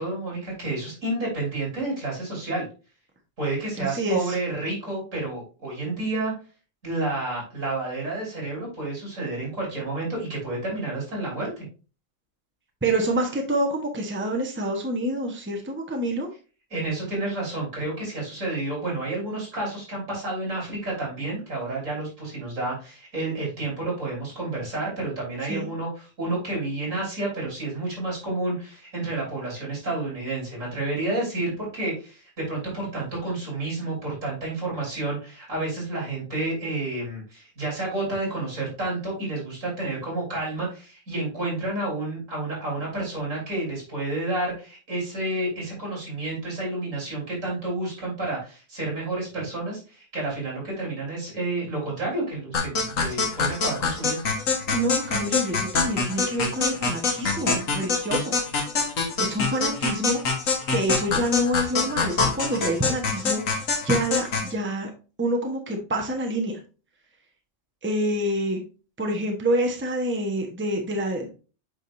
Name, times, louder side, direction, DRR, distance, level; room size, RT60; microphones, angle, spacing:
voice 1, 0.0-2.7 3.4-6.3 6.8-11.6 16.7-54.2, right 2 dB, 75° right, -3 dB, 4.5 m, -30 dB
voice 2, 3.8-4.4 12.8-16.3 25.5-25.7 54.7-58.3 59.2-60.2 60.7-63.4 63.8-64.9 65.2-66.6 67.8-68.6 69.0-71.3, right 1 dB, 10° right, 2 dB, 1.1 m, -27 dB
sound 1, 52.5-64.5, left 4 dB, 85° left, 1.7 m, -25 dB
8.6 x 5.1 x 2.6 m, 0.34 s
omnidirectional pair, 1.4 m